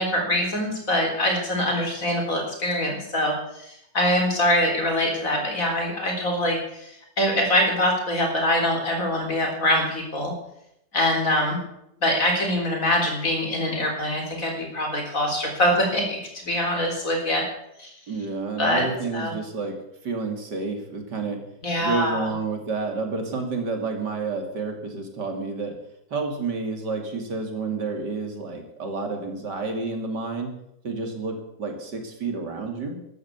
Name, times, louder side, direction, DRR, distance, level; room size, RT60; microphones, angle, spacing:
voice 1, 0.0-10.3 10.9-11.6 12.0-17.4 17.8-17.9 18.6-18.9 19.1-19.3 21.6-22.3, left 1 dB, 45° left, 2 dB, 4.3 m, -24 dB
voice 2, 18.1-19.8 20.0-21.4 21.8-25.7 26.1-30.5 30.8-33.0, right 4 dB, 65° right, 4 dB, 3.3 m, -30 dB
12.5 x 12.5 x 8.1 m, 0.78 s
omnidirectional pair, 2.0 m